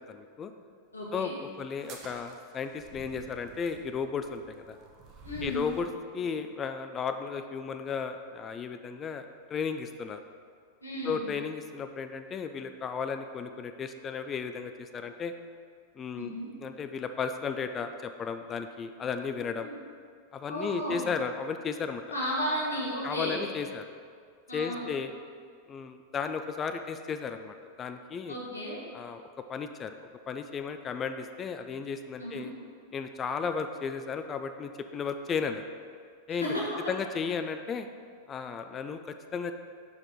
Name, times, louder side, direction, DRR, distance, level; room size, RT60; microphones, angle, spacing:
voice 1, 0.1-0.5 1.1-4.8 5.4-10.2 11.0-15.3 16.0-16.3 16.6-19.7 20.3-22.0 23.0-23.9 24.5-25.1 25.7-28.4 28.9-32.5 32.9-35.6 36.3-36.5 36.9-37.9 38.3-39.5, left 6 dB, 25° left, 8 dB, 0.4 m, -34 dB
voice 2, 0.9-1.3 5.2-5.6 10.8-11.2 16.2-16.5 19.6-19.7 20.5-21.0 22.1-23.4 24.5-24.9 28.3-28.8 32.2-32.5 36.3-36.8, equal, 85° left, -6 dB, 1.8 m, -33 dB
sound 1, 1.7-5.9, right 4 dB, 35° right, 0.9 m, -50 dB
5.9 x 4.8 x 4.8 m, 2.1 s
figure-of-eight pair, 90°, 0 cm